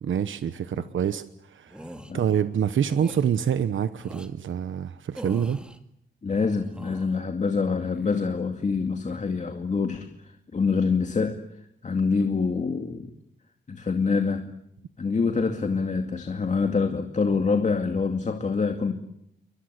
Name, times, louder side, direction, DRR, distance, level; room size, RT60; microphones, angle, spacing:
voice 1, 0.0-5.6, right 8 dB, 85° right, 12 dB, 1.1 m, -26 dB
sound 1, 1.7-2.1 2.9-3.3 4.0-4.3 5.1-5.8 6.5-7.2 7.8-8.5 8.8-9.2, equal, 5° right, 2.3 m, -43 dB
voice 2, 6.2-11.4 11.8-13.1 13.7-14.5 15.0-18.9, left 4 dB, 40° left, 6 dB, 2.3 m, -26 dB
29.5 x 24.5 x 8.3 m, 0.77 s
wide cardioid pair, 155°, 19 cm